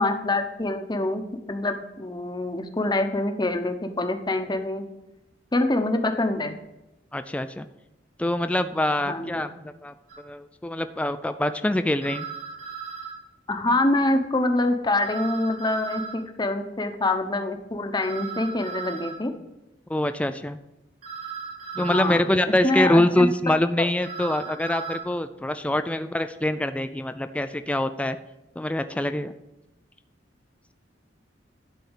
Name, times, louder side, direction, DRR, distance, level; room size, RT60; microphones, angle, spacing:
voice 1, 0.0-4.8 5.5-6.6 9.0-9.4 13.5-19.3 21.8-22.2 22.6-23.9, left 2 dB, 25° left, 6 dB, 0.9 m, -25 dB
voice 2, 7.1-7.7 8.2-12.3 19.9-20.6 21.8-28.2 28.6-29.3, left 1 dB, 5° left, 10 dB, 0.3 m, -24 dB
sound 1, 10.1-10.2 12.0-13.2 15.0-16.2 18.0-19.2 21.0-22.2 24.0-25.0, right 6 dB, 50° right, 3.0 m, -36 dB
11.5 x 4.2 x 8.1 m, 0.92 s
head